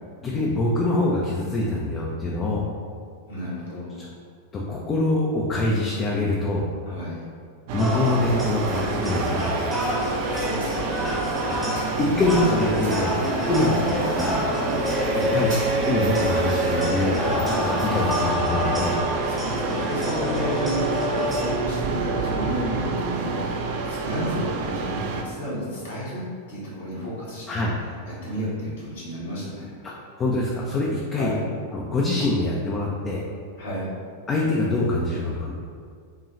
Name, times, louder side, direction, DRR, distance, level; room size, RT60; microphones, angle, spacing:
voice 1, 0.2-2.7 4.5-6.7 7.7-9.5 11.4-11.6 12.0-13.2 13.5-14.4 15.3-15.5 15.9-19.0 27.5-27.7 29.8-29.9 30.2-31.3 31.7-33.2 34.3-35.5, left 2 dB, 25° left, -3 dB, 0.5 m, -24 dB
voice 2, 3.2-4.0 6.9-7.3 10.0-11.2 11.9-12.3 13.7-13.8 15.1-15.3 19.3-26.2 26.5-27.6 28.2-29.8 31.1-31.4 33.6-33.9, equal, 60° left, -6 dB, 1.3 m, -32 dB
sound 1, 7.7-25.2, right 4 dB, 50° right, 0.4 m, -29 dB
sound 2, 7.8-21.5, equal, 5° right, 0.8 m, -27 dB
sound 3, 7.9-18.3, equal, 80° right, 1.2 m, -35 dB
5.5 x 2.3 x 3.1 m, 2.2 s
figure-of-eight pair, 90°, 0 cm